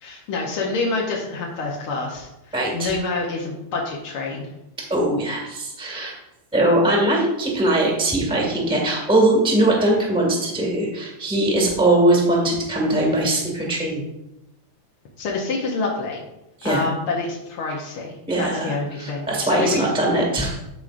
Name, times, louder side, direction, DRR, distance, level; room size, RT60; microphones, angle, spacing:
voice 1, 0.0-4.5 15.2-16.2 16.6-19.9, left 3 dB, 70° left, -2 dB, 1.3 m, -27 dB
voice 2, 2.5-2.9 4.9-6.1 6.5-14.0 16.6-16.9 18.3-18.7 19.0-20.6, right 1 dB, 5° right, -3 dB, 0.9 m, -20 dB
13.5 x 4.8 x 2.5 m, 0.91 s
omnidirectional pair, 3.6 m